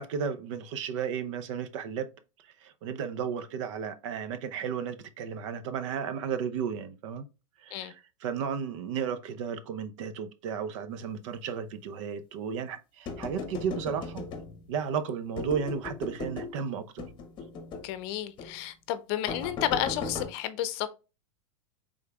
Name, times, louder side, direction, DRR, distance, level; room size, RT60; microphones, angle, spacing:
voice 1, 0.0-2.1 2.6-7.3 7.6-14.2 14.7-17.1, right 7 dB, 65° right, 0.7 m, -34 dB
sound 1, 13.1-14.8 15.4-16.6 17.0-17.9 18.4-18.6 19.3-20.3, left 4 dB, 25° left, 0.9 m, -38 dB
voice 2, 17.8-20.9, left 12 dB, 50° left, 0.6 m, -31 dB
5.2 x 3.6 x 2.3 m
supercardioid pair, 135°, 17 cm